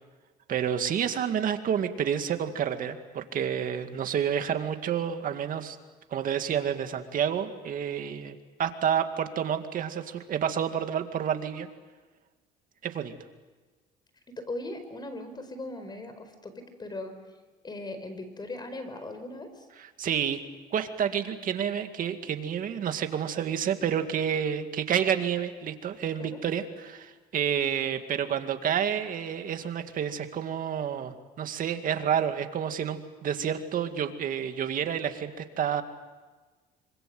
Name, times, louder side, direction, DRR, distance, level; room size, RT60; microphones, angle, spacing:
voice 1, 0.5-5.8 6.1-11.7 12.8-13.1 19.8-20.4 20.7-35.8, right 8 dB, 55° right, 7 dB, 2.2 m, -29 dB
voice 2, 14.3-17.1 17.6-19.7 26.2-26.4, left 2 dB, 25° left, 9 dB, 4.8 m, -39 dB
26.0 x 25.5 x 7.8 m, 1.3 s
cardioid pair, 110°, 17 cm